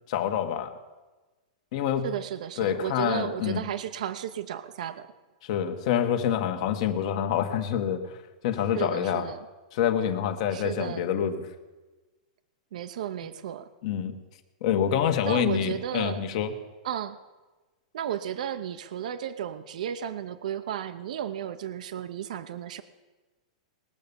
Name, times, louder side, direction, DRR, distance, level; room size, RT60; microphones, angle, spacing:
voice 1, 0.1-0.8 1.7-2.1 2.6-3.6 5.4-8.2 8.4-9.3 9.7-11.5 13.8-14.1 14.6-16.5, left 9 dB, 50° left, 7 dB, 1.3 m, -27 dB
voice 2, 2.0-5.1 8.7-9.4 10.5-11.1 12.7-13.7 15.2-16.2 16.8-17.2 17.9-22.8, right 10 dB, 70° right, 11 dB, 0.7 m, -33 dB
20.0 x 7.0 x 6.9 m, 1.2 s
supercardioid pair, 150°, 4 cm